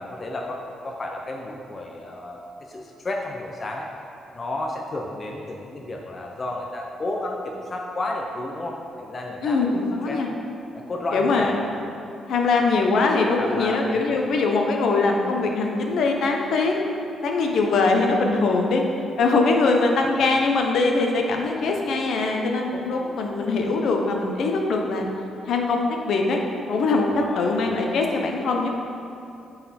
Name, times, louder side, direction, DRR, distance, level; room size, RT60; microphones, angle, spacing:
voice 1, 0.0-3.9 4.3-10.2 10.7-11.6 13.4-14.2 27.2-27.6, left 2 dB, 25° left, 0 dB, 0.5 m, -32 dB
voice 2, 9.4-10.3 11.1-11.6 12.3-16.8 17.2-18.8 19.2-25.1 25.5-26.4 26.7-28.7, left 3 dB, 60° left, 2 dB, 0.7 m, -22 dB
9.1 x 4.1 x 4.3 m, 2.7 s
cardioid pair, 160°, 0 cm